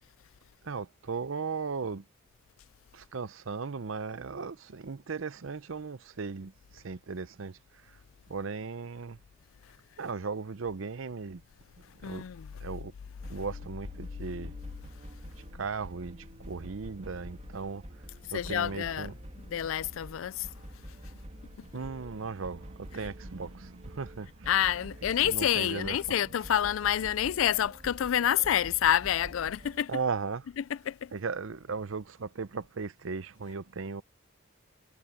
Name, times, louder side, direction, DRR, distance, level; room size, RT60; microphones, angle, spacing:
voice 1, 0.6-2.0 2.9-7.6 7.9-8.0 8.3-9.2 10.0-11.4 12.0-12.2 12.6-12.9 13.3-14.5 15.5-17.8 18.3-19.5 21.6-24.5 25.2-26.0 29.9-30.4 31.1-34.0, right 4 dB, 70° right, 0.7 m, -37 dB
voice 2, 12.0-12.5 18.3-19.1 19.5-20.5 24.5-29.9 30.6-31.1, left 10 dB, 70° left, 0.4 m, -28 dB
sound 1, 13.2-29.8, equal, 35° right, 3.0 m, -47 dB
head